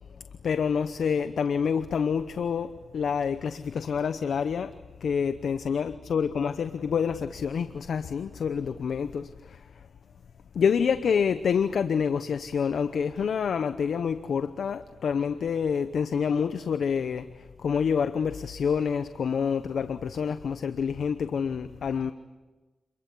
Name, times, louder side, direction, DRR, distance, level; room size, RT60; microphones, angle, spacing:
voice 1, 0.4-9.9 10.5-22.1, left 6 dB, 80° left, 0.8 m, -27 dB
27.5 x 22.5 x 8.5 m
cardioid pair, 45°, 0 cm